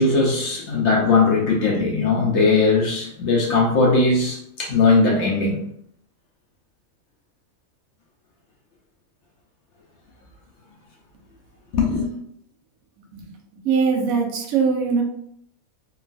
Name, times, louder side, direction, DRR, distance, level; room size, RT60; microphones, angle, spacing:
voice 1, 0.0-5.5 11.7-12.1, left 3 dB, 65° left, 0.8 m, -19 dB
voice 2, 13.6-15.0, right 5 dB, 85° right, 1.1 m, -21 dB
3.1 x 2.3 x 2.5 m
omnidirectional pair, 1.5 m